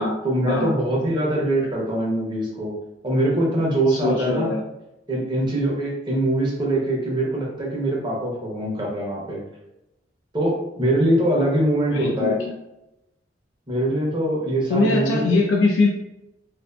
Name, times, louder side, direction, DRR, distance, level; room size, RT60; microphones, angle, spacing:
voice 1, 0.0-2.7 3.0-4.5 5.1-9.4 10.3-12.4 13.7-15.4, right 1 dB, 25° right, -3 dB, 0.6 m, -23 dB
voice 2, 3.9-4.6 11.9-12.5 14.7-15.9, left 3 dB, 85° left, -1 dB, 0.4 m, -21 dB
2.5 x 2.4 x 2.2 m, 0.91 s
head